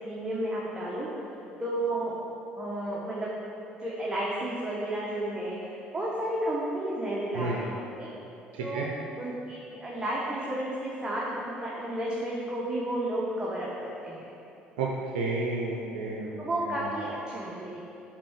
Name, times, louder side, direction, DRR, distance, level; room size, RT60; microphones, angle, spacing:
voice 1, 0.0-1.1 1.6-2.1 2.6-3.3 3.8-8.1 8.6-8.9 9.2-14.3 16.4-17.8, right 1 dB, 15° right, -6 dB, 1.4 m, -32 dB
voice 2, 8.5-8.9 14.8-16.9, right 3 dB, 70° right, -2 dB, 0.7 m, -32 dB
7.5 x 4.6 x 6.5 m, 2.8 s
figure-of-eight pair, 55°, 5 cm